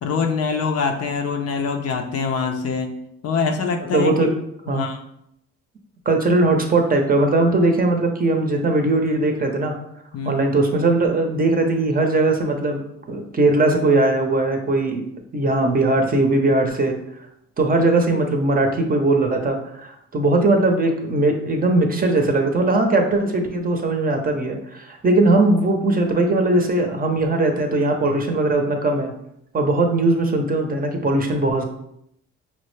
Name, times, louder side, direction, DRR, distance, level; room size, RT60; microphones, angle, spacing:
voice 1, 0.0-2.9 3.2-4.4 4.7-5.0 10.1-10.4, left 5 dB, 55° left, 5 dB, 0.5 m, -24 dB
voice 2, 3.9-4.3 4.7-4.9 6.1-9.7 10.3-12.8 13.1-15.0 15.3-17.0 17.6-29.1 29.5-31.6, right 2 dB, 30° right, 4 dB, 0.6 m, -19 dB
5.5 x 2.1 x 3.1 m, 0.76 s
cardioid pair, 90°, 30 cm